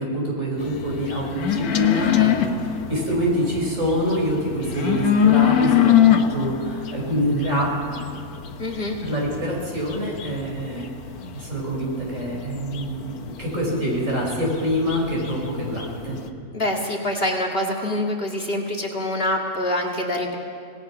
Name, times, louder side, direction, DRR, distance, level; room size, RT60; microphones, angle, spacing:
voice 1, 0.0-2.5 2.9-7.7 9.0-10.9 11.3-16.2, equal, 55° right, -2 dB, 5.6 m, -25 dB
sound 1, 0.6-16.3, left 10 dB, 90° left, 1.5 m, -24 dB
voice 2, 8.6-9.0 16.5-20.4, left 1 dB, 40° left, 0 dB, 2.1 m, -25 dB
25.5 x 18.5 x 5.8 m, 2.3 s
omnidirectional pair, 1.5 m